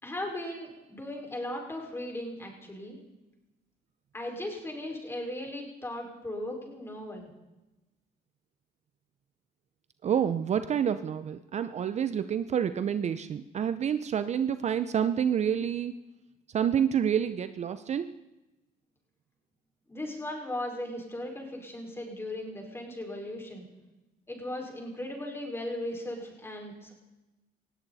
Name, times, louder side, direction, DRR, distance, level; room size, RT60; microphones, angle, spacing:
voice 1, 0.0-3.0 4.1-7.3 19.9-23.6 24.3-26.9, left 1 dB, 15° left, 0 dB, 5.2 m, -37 dB
voice 2, 10.0-15.9 16.5-18.2, right 8 dB, 40° right, 12 dB, 0.7 m, -28 dB
19.0 x 16.0 x 4.2 m, 1.0 s
cardioid pair, 110°, 17 cm